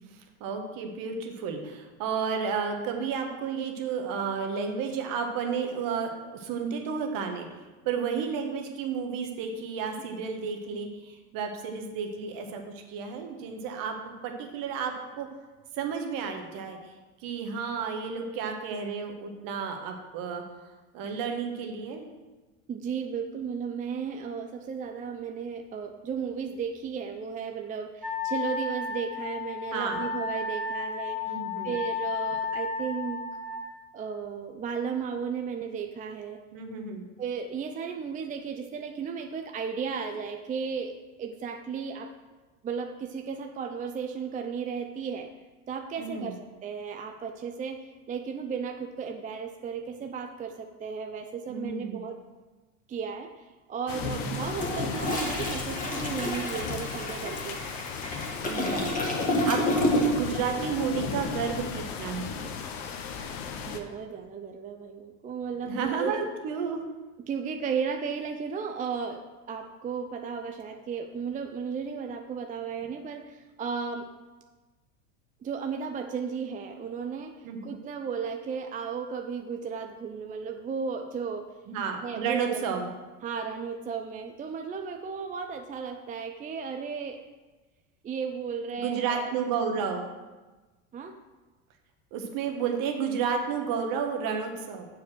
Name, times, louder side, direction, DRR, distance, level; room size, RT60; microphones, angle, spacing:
voice 1, 0.1-7.5 7.8-15.3 15.7-16.9 17.2-20.4 20.9-22.1 29.7-30.1 31.2-31.7 36.5-37.0 46.0-46.3 51.5-52.0 54.0-54.3 58.4-62.3 65.6-66.8 77.4-77.7 81.7-82.9 88.8-90.0 92.1-94.9, right 6 dB, 55° right, 4 dB, 1.5 m, -32 dB
voice 2, 22.7-31.3 31.6-33.2 33.9-36.4 37.2-42.1 42.6-45.3 45.7-46.4 46.6-47.8 48.1-52.2 52.9-57.6 63.7-66.2 67.3-74.1 75.4-81.4 82.0-82.7 83.2-87.2 88.0-89.3 90.9-91.1, right 6 dB, 20° right, 5 dB, 0.5 m, -34 dB
Wind instrument woodwind instrument, 28.0-33.7, left 4 dB, ahead, 1.5 m, -33 dB
sound 1, 53.9-63.8, left 5 dB, 55° left, 1.1 m, -35 dB
Toilet flush, 54.4-60.4 60.7-60.9, left 1 dB, 20° left, 1.7 m, -29 dB
7.0 x 5.0 x 6.2 m, 1.2 s
supercardioid pair, 100°, 41 cm